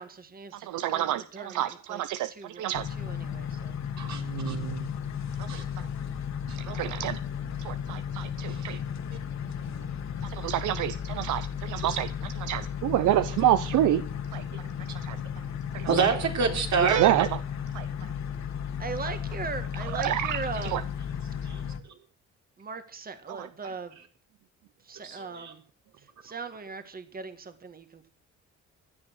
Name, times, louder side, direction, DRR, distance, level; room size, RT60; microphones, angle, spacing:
voice 1, 0.0-1.1 1.3-3.8 7.4-8.0 18.8-20.9 22.6-24.0 24.8-25.6 26.0-28.1, right 4 dB, 30° right, 1.8 m, -40 dB
voice 2, 0.5-2.9 4.1-4.9 5.4-5.6 6.6-7.2 7.6-8.8 10.2-14.0 14.3-14.4 15.0-15.2 15.7-15.9 16.8-17.3 17.7-17.9 19.9-20.4 20.7-20.8 23.4-23.5, right 13 dB, 85° right, 0.7 m, -28 dB
sound 1, 2.7-21.8, left 8 dB, 65° left, 2.1 m, -34 dB
voice 3, 4.0-4.6 5.5-5.6 6.5-6.6 8.5-8.8 11.8-12.0 15.9-17.3 21.4-21.7 25.0-25.5 26.3-26.4, right 5 dB, 65° right, 3.8 m, -28 dB
16.0 x 10.5 x 6.3 m
cardioid pair, 90°, 30 cm